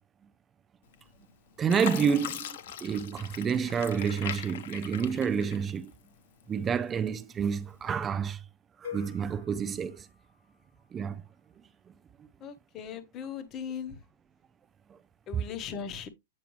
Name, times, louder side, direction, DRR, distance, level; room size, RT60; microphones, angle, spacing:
Fill (with liquid), 0.9-1.3 1.7-6.1 6.5-7.3 7.9-8.0, left 10 dB, 50° left, 0.9 m, -40 dB
voice 1, 1.6-2.5 2.8-5.9 6.5-8.4 8.8-10.1 10.9-11.2, right 7 dB, 15° right, 0.3 m, -29 dB
sound 1, 8.8-10.9, left 9 dB, 75° left, 1.4 m, -46 dB
voice 2, 12.4-14.0 15.3-16.1, left 7 dB, 20° left, 0.9 m, -38 dB
8.6 x 5.8 x 3.1 m
supercardioid pair, 175°, 0 cm